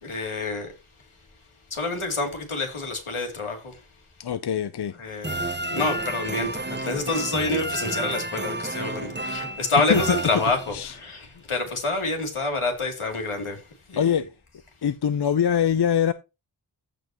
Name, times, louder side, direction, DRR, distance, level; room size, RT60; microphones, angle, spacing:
voice 1, 0.0-0.7 1.7-3.8 5.0-14.2, left 3 dB, 85° left, 2.9 m, -28 dB
voice 2, 4.2-4.9 9.9-10.2 10.7-10.9 14.0-14.3 14.8-16.1, left 8 dB, 55° left, 0.6 m, -23 dB
sound 1, 5.2-11.0, right 1 dB, 20° right, 1.0 m, -31 dB
15.0 x 5.4 x 2.9 m
wide cardioid pair, 70°, 49 cm